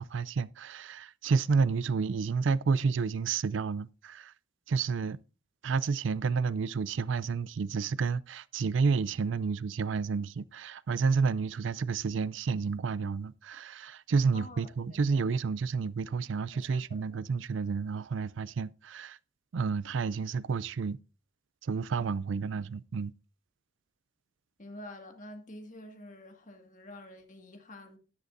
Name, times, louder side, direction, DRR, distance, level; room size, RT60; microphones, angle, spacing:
voice 1, 0.0-4.3 4.7-5.2 5.6-19.2 19.5-21.0 21.6-23.1, right 5 dB, 80° right, 0.4 m, -30 dB
voice 2, 14.3-15.2 16.7-16.8 17.1-17.2 24.6-28.0, left 1 dB, 40° left, 1.9 m, -48 dB
13.0 x 11.0 x 2.6 m
head